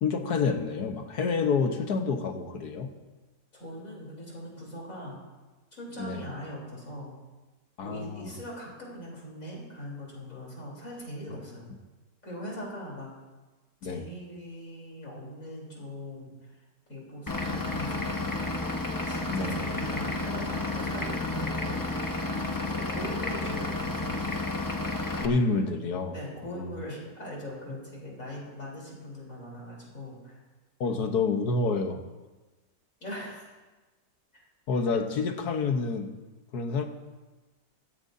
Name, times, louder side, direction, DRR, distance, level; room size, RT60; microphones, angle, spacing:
voice 1, 0.0-2.9 6.0-6.2 7.8-8.3 13.8-14.1 19.3-19.6 25.2-26.1 26.4-26.7 30.8-32.0 34.7-36.1 36.5-36.9, left 4 dB, 65° left, 5 dB, 1.6 m, -28 dB
voice 2, 3.5-5.2 5.7-7.1 7.8-11.7 12.2-13.1 13.8-16.5 16.9-18.6 19.1-21.9 22.5-24.3 26.1-30.4 30.8-31.0 33.0-33.5 34.3-34.4, equal, 50° left, -4 dB, 4.2 m, -41 dB
Vehicle / Engine, 17.3-25.3, left 2 dB, 25° left, 0.4 m, -31 dB
17.0 x 16.5 x 2.7 m, 1.2 s
omnidirectional pair, 1.8 m